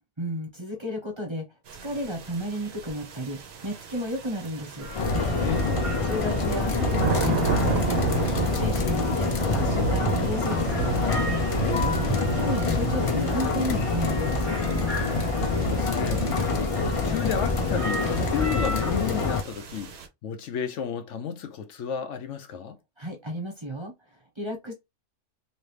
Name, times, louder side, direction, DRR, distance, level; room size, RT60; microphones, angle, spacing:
voice 1, 0.2-1.5 1.8-4.9 6.0-11.1 12.3-14.6 23.0-24.7, equal, 25° right, 1.2 m, -33 dB
sound 1, 1.7-20.1, right 6 dB, 60° right, 0.9 m, -33 dB
sound 2, 4.8-18.9, left 1 dB, 25° left, 0.8 m, -37 dB
sound 3, 4.9-19.4, left 4 dB, 55° left, 0.4 m, -26 dB
voice 2, 5.4-5.9 11.6-12.1 15.3-22.8, left 8 dB, 75° left, 0.9 m, -33 dB
3.1 x 2.6 x 3.2 m
omnidirectional pair, 1.3 m